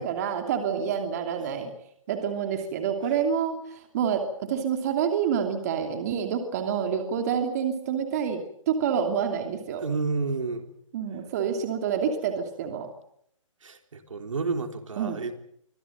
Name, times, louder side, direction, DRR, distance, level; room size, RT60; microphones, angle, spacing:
voice 1, 0.0-1.7 2.1-9.8 10.9-12.9 15.0-15.2, right 7 dB, 30° right, 6 dB, 2.7 m, -28 dB
voice 2, 9.8-10.7 13.6-15.3, right 4 dB, 70° right, 6 dB, 3.8 m, -30 dB
25.0 x 16.5 x 9.2 m, 0.70 s
hypercardioid pair, 165°, 17 cm